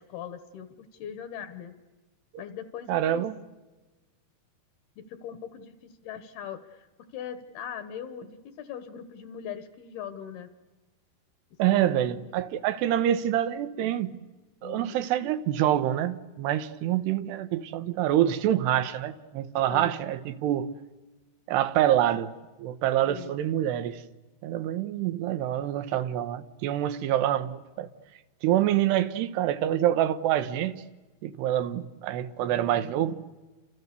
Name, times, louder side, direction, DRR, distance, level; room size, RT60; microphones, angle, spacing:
voice 1, 0.0-1.7 2.4-3.2 5.0-6.9 7.1-10.5 11.7-12.3 14.6-15.0 19.7-20.0 23.0-23.3, left 8 dB, 75° left, 3.1 m, -40 dB
voice 2, 2.9-3.3 11.6-14.2 14.6-20.7 21.5-24.0 24.4-27.9 28.4-30.8 31.2-33.2, right 12 dB, 85° right, 3.2 m, -26 dB
30.0 x 27.0 x 6.9 m
omnidirectional pair, 4.7 m